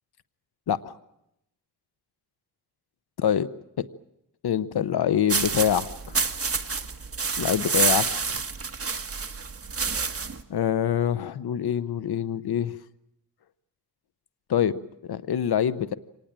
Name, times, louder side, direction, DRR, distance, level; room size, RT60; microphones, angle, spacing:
voice 1, 3.2-3.5 4.4-6.2 7.4-8.4 10.5-12.7 14.5-15.9, left 9 dB, 75° left, 15 dB, 0.9 m, -25 dB
sound 1, 5.3-10.4, right 5 dB, 35° right, 1.5 m, -28 dB
25.5 x 19.5 x 8.9 m, 0.83 s
wide cardioid pair, 100°, 39 cm